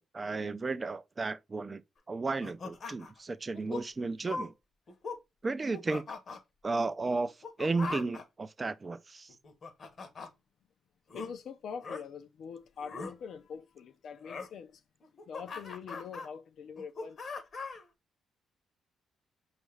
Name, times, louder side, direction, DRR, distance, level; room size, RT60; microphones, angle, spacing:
voice 1, 0.1-1.8 2.1-4.5 5.4-6.1 6.6-9.3, right 3 dB, 30° right, 0.4 m, -33 dB
sound 1, 2.4-3.2 3.5-3.8 4.3-4.5 4.9-5.2 5.6-6.4 7.2-8.2 9.3-10.3 11.1-11.3 11.8-12.0 12.8-13.1 14.2-14.5 15.0-16.3 16.8-17.8, left 4 dB, 45° left, 0.8 m, -40 dB
voice 2, 11.1-14.8 15.3-17.2, left 6 dB, 65° left, 0.4 m, -44 dB
5.2 x 2.4 x 3.2 m
cardioid pair, 90°, 0 cm